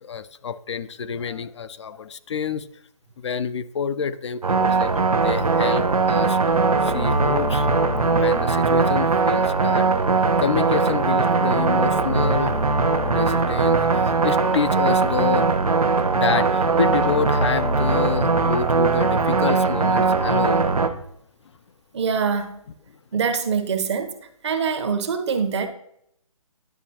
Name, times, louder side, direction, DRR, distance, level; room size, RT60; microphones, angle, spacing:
voice 1, 0.0-2.7 3.2-7.7 8.1-12.6 13.0-15.5 16.1-20.7, left 6 dB, 50° left, 13 dB, 0.4 m, -28 dB
sound 1, 4.4-20.9, right 4 dB, 90° right, 0.8 m, -20 dB
voice 2, 21.9-22.6 23.1-24.1 24.4-25.7, right 6 dB, 50° right, 8 dB, 1.0 m, -24 dB
10.0 x 5.9 x 2.8 m, 0.74 s
figure-of-eight pair, 145°, 18 cm